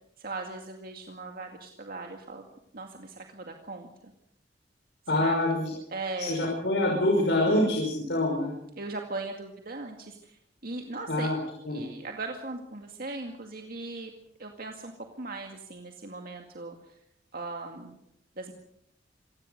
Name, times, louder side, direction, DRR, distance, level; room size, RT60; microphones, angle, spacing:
voice 1, 0.2-2.5 2.7-4.1 5.2-6.5 7.1-7.5 8.8-11.3 11.7-14.1 14.4-14.9 15.2-16.9 17.3-18.0 18.4-18.5, right 3 dB, 55° right, 3 dB, 2.2 m, -39 dB
voice 2, 5.1-5.7 6.3-8.5 11.1-11.4 11.6-11.8, left 1 dB, 70° left, 0 dB, 5.6 m, -25 dB
27.0 x 17.0 x 6.7 m, 0.76 s
head